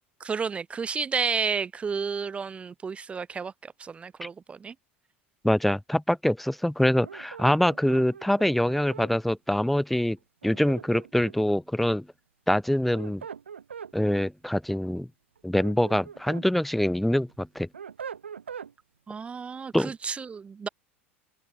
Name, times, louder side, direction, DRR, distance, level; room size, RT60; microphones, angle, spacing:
voice 1, 0.2-4.7 19.1-20.7, right 5 dB, 20° right, 0.6 m, -31 dB
voice 2, 5.4-10.2 10.4-12.1 12.5-13.2 13.9-15.1 15.4-17.7 19.7-19.9, left 1 dB, ahead, 1.0 m, -24 dB
sound 1, 7.0-9.1 10.4-11.5 12.7-13.9 15.4-16.5 16.9-18.7, right 7 dB, 75° right, 4.2 m, -42 dB
open air
figure-of-eight pair, 80°, 6 cm